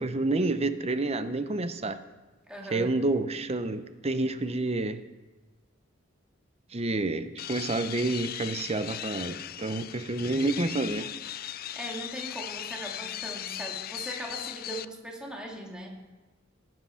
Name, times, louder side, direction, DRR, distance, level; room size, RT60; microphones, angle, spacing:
voice 1, 0.0-2.0 2.7-5.0 6.7-11.1, right 2 dB, 30° right, 10 dB, 0.8 m, -29 dB
voice 2, 2.5-3.0 11.7-16.0, right 1 dB, 5° right, -1 dB, 2.4 m, -39 dB
sound 1, 7.4-14.8, left 12 dB, 50° left, 0.4 m, -38 dB
19.5 x 7.8 x 5.7 m, 1.2 s
head